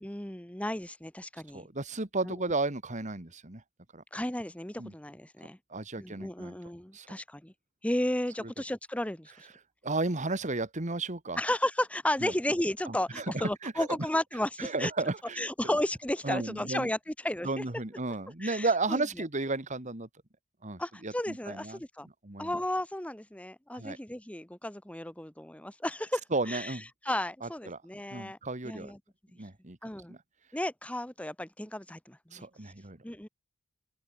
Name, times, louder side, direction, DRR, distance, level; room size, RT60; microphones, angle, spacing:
voice 1, 0.0-1.7 2.3-2.4 4.1-5.6 6.0-7.5 7.8-9.3 11.4-14.9 15.4-17.6 18.4-19.0 20.8-22.1 22.4-26.8 27.0-28.4 28.6-29.0 29.8-30.2 30.5-32.2 33.0-33.3, left 1 dB, 5° left, 1.1 m, -33 dB
voice 2, 1.5-3.6 3.9-4.0 4.8-4.9 5.7-6.6 6.9-7.1 8.4-8.5 9.8-11.4 12.2-12.3 12.9-13.9 14.6-15.5 16.2-16.9 17.4-20.1 20.6-22.6 23.7-24.0 26.3-26.8 27.4-27.8 28.1-28.9 29.4-29.8 30.1-30.2 32.3-33.0, right 3 dB, 35° right, 1.9 m, -33 dB
open air
head